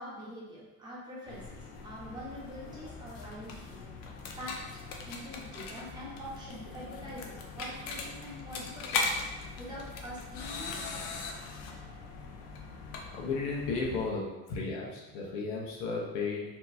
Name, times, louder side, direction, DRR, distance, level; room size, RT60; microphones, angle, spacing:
voice 1, 0.0-3.8 4.4-4.6 5.0-9.3 9.6-11.1, equal, 15° right, -7 dB, 1.0 m, -45 dB
sound 1, 1.3-14.1, left 4 dB, 60° left, 0.6 m, -40 dB
voice 2, 13.1-16.4, left 4 dB, 80° left, -2 dB, 1.0 m, -34 dB
4.4 x 3.0 x 2.7 m, 1.1 s
cardioid pair, 160°, 29 cm